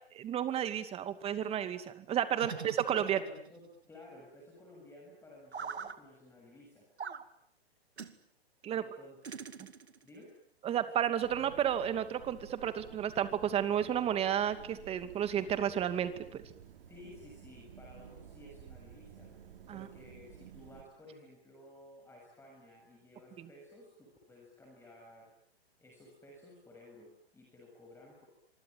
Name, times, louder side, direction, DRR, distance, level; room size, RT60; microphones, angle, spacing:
voice 1, 0.1-3.2 8.6-8.8 10.6-16.4 19.7-19.9 23.4-23.5, right 10 dB, 20° right, 11 dB, 2.4 m, -32 dB
voice 2, 2.3-2.7 3.0-6.9 8.7-9.2 10.0-10.3 16.9-19.4 19.7-25.3 25.8-28.3, left 1 dB, 10° left, -1 dB, 7.2 m, -55 dB
sound 1, 2.4-3.6 5.5-6.0 7.0-7.3 8.0-8.2 9.2-10.1, right 6 dB, 85° right, 2.4 m, -43 dB
sound 2, 11.2-20.8, right 8 dB, 55° right, 5.2 m, -53 dB
26.5 x 24.5 x 8.8 m, 0.66 s
hypercardioid pair, 135°, 32 cm